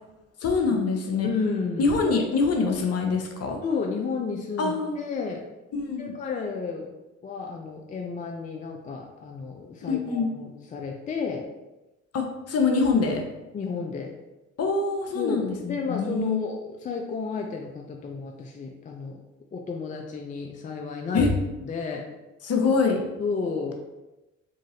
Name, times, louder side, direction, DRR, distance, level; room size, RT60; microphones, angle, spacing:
voice 1, 0.4-1.3 1.8-3.6 4.6-5.0 5.7-6.1 9.8-10.3 12.1-13.2 14.6-16.5 21.1-21.3 22.4-23.0, left 4 dB, 40° left, 2 dB, 0.8 m, -24 dB
voice 2, 1.2-1.9 3.6-5.4 6.0-6.9 7.2-11.5 13.5-14.1 15.1-19.2 19.5-21.3 21.6-22.1 23.2-23.7, left 5 dB, 20° left, 2 dB, 0.4 m, -32 dB
3.7 x 3.0 x 2.8 m, 1.0 s
hypercardioid pair, 50°, 38 cm